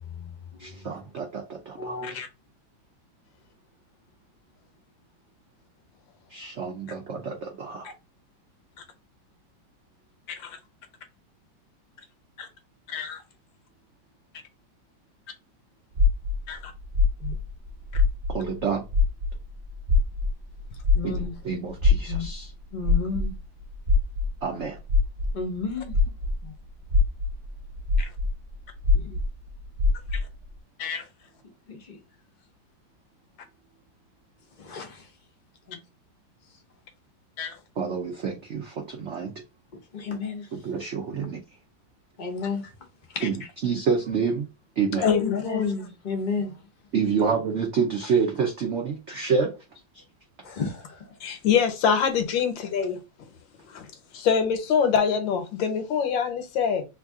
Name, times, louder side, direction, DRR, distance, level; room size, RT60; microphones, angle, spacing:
voice 1, 0.6-2.2 6.3-7.9 18.3-18.9 21.0-22.5 24.4-24.8 37.8-39.3 40.5-41.4 43.2-44.5 44.8-45.1 46.9-49.5 49.9-50.0, right 5 dB, 75° right, 0.6 m, -28 dB
voice 2, 1.8-2.1 17.2-17.3 20.9-21.3 22.1-22.3 22.7-23.3 25.3-25.9 26.4-26.5 28.9-29.2 31.7-32.0 34.6-35.0 35.7-35.8 39.9-40.5 42.2-42.7 45.2-46.5 50.4-51.0, left 4 dB, 50° left, 0.5 m, -32 dB
voice 3, 12.9-13.2 16.5-16.6 28.0-28.1 30.1-30.2 30.8-31.0 37.4-37.6 43.2-43.3 45.0-45.7 51.2-53.0 53.7-53.9 54.1-56.8, left 7 dB, 75° left, 1.5 m, -25 dB
sound 1, 15.9-18.6 18.9-26.4 26.8-30.3, left 3 dB, 45° right, 0.9 m, -24 dB
3.2 x 2.6 x 3.5 m
omnidirectional pair, 2.1 m